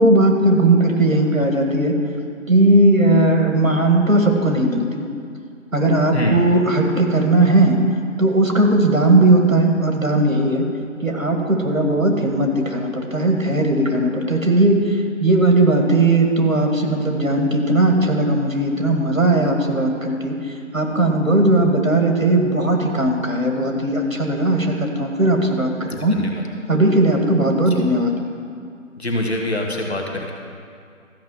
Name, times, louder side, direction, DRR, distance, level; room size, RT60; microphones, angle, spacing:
voice 1, 0.0-1.9 2.5-5.0 5.7-7.8 8.2-10.6 11.0-20.3 20.7-26.2 26.7-28.2, right 2 dB, 75° right, 2 dB, 2.0 m, -17 dB
voice 2, 29.0-30.3, left 1 dB, 50° left, 1 dB, 1.7 m, -24 dB
13.5 x 5.6 x 7.1 m, 2.3 s
figure-of-eight pair, 160°, 40 cm